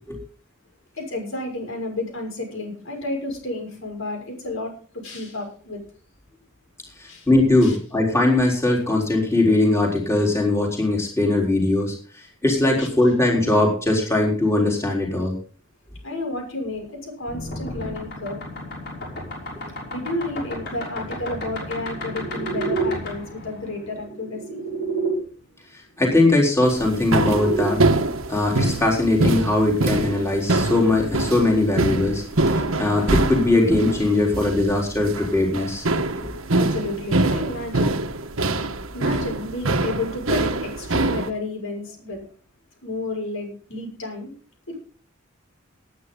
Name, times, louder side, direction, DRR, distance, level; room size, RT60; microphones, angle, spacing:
voice 1, 1.0-5.8 7.1-7.3 7.6-7.8 12.8-12.9 16.0-18.4 19.9-24.6 36.5-38.0 38.9-42.2 42.8-44.3 44.7-44.8, left 2 dB, 70° left, 2 dB, 6.2 m, -31 dB
voice 2, 7.0-15.4 26.0-27.8 28.3-35.8 36.2-36.3, left 2 dB, 15° left, -1 dB, 3.9 m, -20 dB
sound 1, 17.3-25.2 26.4-27.7, right 2 dB, 50° left, 6.2 m, -31 dB
sound 2, 26.7-41.3, right 2 dB, 80° right, 1.4 m, -24 dB
19.5 x 9.5 x 3.9 m, 0.41 s
head